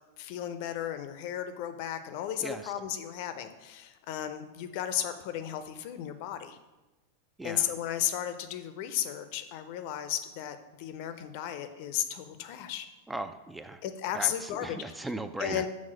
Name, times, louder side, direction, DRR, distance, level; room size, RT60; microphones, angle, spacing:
voice 1, 0.2-6.6 7.4-12.9 13.8-14.9 15.4-15.7, left 10 dB, 45° left, 10 dB, 0.6 m, -34 dB
voice 2, 2.4-2.7 7.4-7.7 13.1-13.8 14.1-15.6, right 2 dB, 5° right, 9 dB, 0.3 m, -38 dB
6.3 x 3.7 x 6.2 m, 1.1 s
figure-of-eight pair, 90°, 0 cm